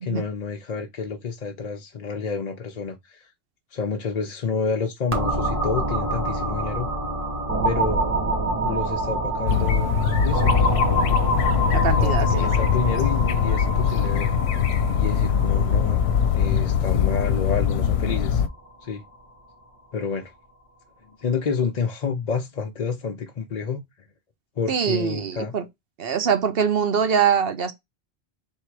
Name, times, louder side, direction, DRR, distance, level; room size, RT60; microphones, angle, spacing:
voice 1, 0.0-3.3 3.7-6.9 7.6-8.1 8.6-9.9 10.2-10.5 12.0-14.3 15.0-16.0 16.3-18.4 18.8-19.0 19.9-20.3 21.0-23.8 24.6-25.5, left 5 dB, 50° left, 0.6 m, -29 dB
sound 1, 5.1-18.7, right 1 dB, 10° right, 1.5 m, -27 dB
sound 2, 9.5-18.5, left 8 dB, 90° left, 0.8 m, -22 dB
voice 2, 11.7-12.5 24.7-25.6 26.0-27.7, right 7 dB, 70° right, 1.0 m, -23 dB
3.5 x 2.8 x 4.5 m
omnidirectional pair, 1.0 m